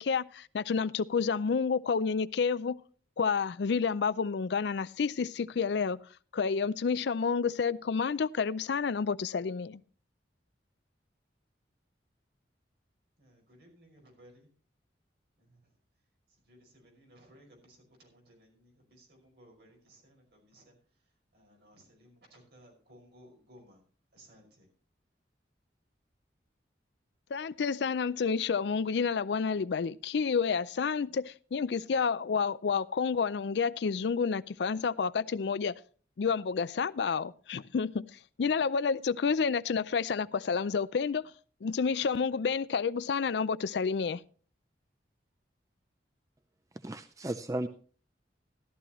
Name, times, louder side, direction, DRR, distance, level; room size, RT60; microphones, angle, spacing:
voice 1, 0.0-2.8 3.2-6.0 6.3-9.8 27.3-35.8 36.2-38.0 38.4-41.3 41.6-44.2, left 5 dB, 65° left, 0.4 m, -29 dB
voice 2, 13.2-14.5 15.4-15.7 16.3-23.8 24.1-24.7, equal, 60° right, 5.6 m, -59 dB
voice 3, 46.7-47.7, right 1 dB, 20° right, 0.4 m, -35 dB
14.0 x 12.5 x 3.0 m
head